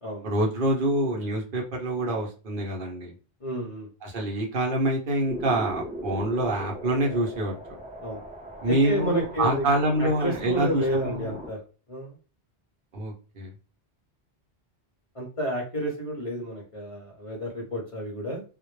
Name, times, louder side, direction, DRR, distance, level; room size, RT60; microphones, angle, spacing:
voice 1, 0.2-3.1 4.0-7.5 8.6-11.3 12.9-13.5, right 1 dB, 60° right, 0 dB, 0.7 m, -26 dB
voice 2, 3.4-3.9 8.0-8.2 8.7-9.6 10.0-11.6 11.9-12.2 15.1-18.4, equal, 40° left, -2 dB, 0.6 m, -30 dB
sound 1, 5.3-11.5, right 1 dB, 10° right, 0.5 m, -39 dB
2.1 x 2.0 x 3.0 m, 0.34 s
omnidirectional pair, 1.1 m